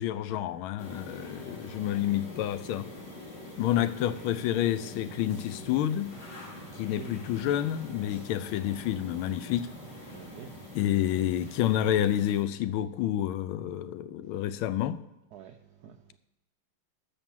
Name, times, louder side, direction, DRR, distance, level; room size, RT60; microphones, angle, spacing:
voice 1, 0.0-2.9 3.6-6.1 6.8-9.7 10.7-15.0, left 11 dB, 80° left, 1.4 m, -29 dB
sound 1, 0.8-12.4, left 1 dB, 50° left, 3.0 m, -45 dB
voice 2, 6.7-7.2 10.1-10.8 14.2-14.3 15.3-16.2, right 9 dB, 85° right, 0.8 m, -48 dB
12.0 x 5.3 x 7.4 m
omnidirectional pair, 2.4 m